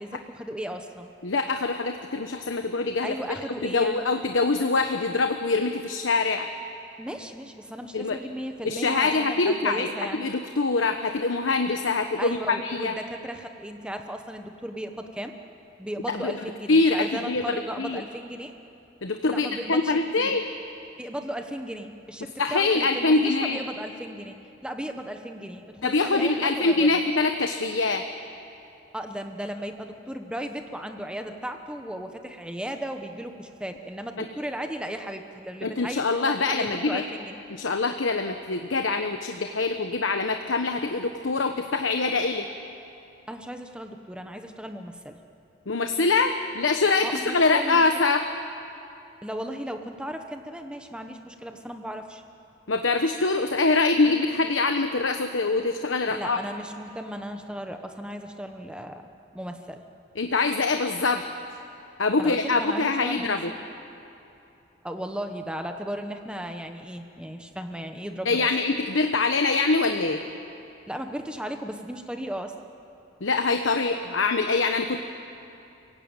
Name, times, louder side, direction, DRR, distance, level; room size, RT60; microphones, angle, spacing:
voice 1, 0.0-1.1 3.0-4.0 7.0-10.2 12.2-15.3 15.8-18.5 19.3-20.3 21.0-27.0 28.9-36.1 36.5-37.4 43.3-45.2 47.0-47.8 49.2-52.2 56.1-59.1 59.3-59.8 62.2-63.6 64.8-68.5 70.9-72.5, equal, 5° right, 5 dB, 1.1 m, -36 dB
voice 2, 1.2-3.1 3.6-6.5 7.9-8.2 8.6-12.9 16.1-16.3 16.7-18.0 19.0-20.5 22.4-23.6 25.8-28.0 34.2-34.3 35.6-37.0 37.5-42.4 45.7-48.2 52.7-56.4 60.2-61.2 62.0-63.5 68.2-70.2 73.2-75.0, left 3 dB, 85° left, 6 dB, 1.1 m, -24 dB
30.0 x 16.5 x 9.0 m, 2.7 s
head